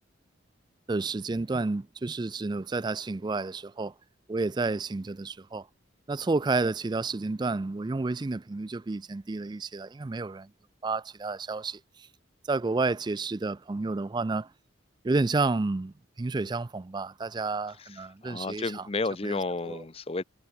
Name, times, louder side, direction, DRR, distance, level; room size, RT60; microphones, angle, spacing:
voice 1, 0.9-3.9 4.3-5.7 6.1-10.5 10.8-12.1 12.5-14.5 15.0-18.9 19.2-19.4 19.6-19.8, right 3 dB, 20° right, 0.3 m, -30 dB
voice 2, 18.2-20.2, left 3 dB, 30° left, 0.6 m, -31 dB
head